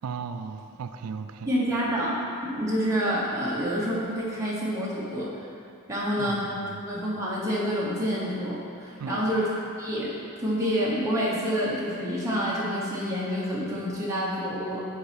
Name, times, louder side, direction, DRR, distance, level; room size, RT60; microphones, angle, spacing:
voice 1, 0.0-1.5 6.2-6.8 9.0-9.4, right 5 dB, 75° right, 9 dB, 0.4 m, -36 dB
voice 2, 1.5-2.2 2.4-5.5 5.9-6.5 6.8-9.5 9.8-14.9, equal, 15° right, -8 dB, 1.1 m, -28 dB
7.1 x 4.3 x 5.0 m, 2.5 s
head